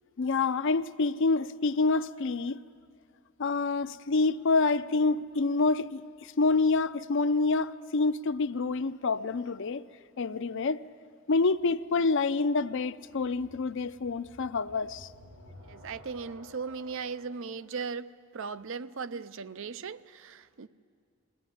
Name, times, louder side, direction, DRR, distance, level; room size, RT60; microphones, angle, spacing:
voice 1, 0.2-2.6 3.4-9.8 10.2-10.8 11.3-15.1, left 3 dB, 60° left, 0.6 m, -27 dB
sound 1, 8.5-9.4 12.9-17.2, equal, 85° right, 7.9 m, -54 dB
voice 2, 15.7-20.7, right 5 dB, 65° right, 0.6 m, -38 dB
22.0 x 17.5 x 9.9 m
head